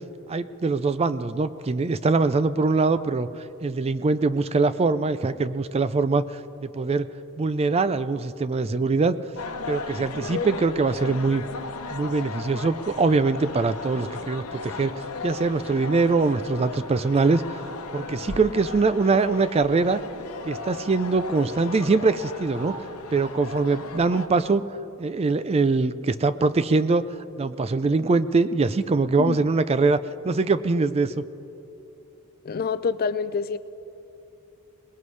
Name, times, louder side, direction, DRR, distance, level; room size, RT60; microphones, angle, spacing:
voice 1, 0.3-3.3 3.6-7.1 7.4-9.2 9.7-11.4 11.9-14.9 15.2-17.6 17.9-20.0 20.4-22.7 23.1-24.6 25.0-27.0 27.4-30.0 30.2-31.2, right 3 dB, 30° right, 14 dB, 0.4 m, -23 dB
sound 1, 9.4-24.3, left 3 dB, 75° left, 1.0 m, -36 dB
voice 2, 32.4-33.6, left 5 dB, 40° left, 14 dB, 0.4 m, -26 dB
22.5 x 20.0 x 3.2 m, 2.8 s
head